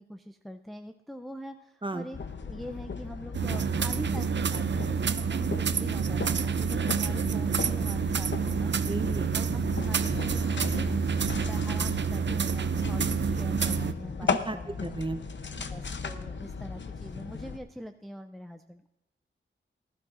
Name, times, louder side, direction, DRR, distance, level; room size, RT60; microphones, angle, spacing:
voice 1, 0.0-8.7 9.3-11.0 11.3-14.9 15.7-18.9, equal, ahead, 6 dB, 0.4 m, -43 dB
sound 1, 2.1-17.6, left 5 dB, 60° left, 0.7 m, -37 dB
sound 2, 3.3-13.9, right 6 dB, 60° right, 0.5 m, -28 dB
voice 2, 8.9-9.3 14.2-15.2 15.5-15.7, right 2 dB, 25° right, 9 dB, 0.8 m, -34 dB
19.0 x 12.0 x 2.5 m, 0.98 s
wide cardioid pair, 80°, 21 cm